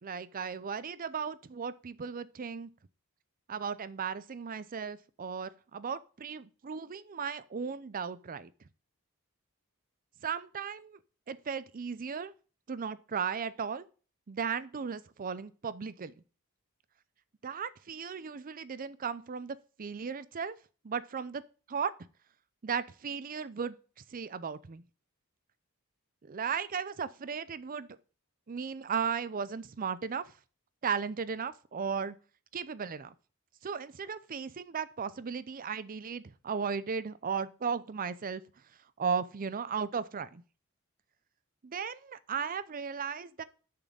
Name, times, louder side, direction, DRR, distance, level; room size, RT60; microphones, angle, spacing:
voice 1, 0.0-2.7 3.5-8.5 10.2-11.0 11.3-12.3 12.7-13.9 14.3-16.1 17.4-20.5 20.8-21.4 21.7-21.9 22.6-23.8 24.1-24.8 26.2-28.0 28.5-30.2 30.8-32.2 32.5-33.1 33.6-38.4 39.0-40.4 41.6-43.4, right 6 dB, 40° right, 0.5 m, -36 dB
6.8 x 6.2 x 5.4 m
head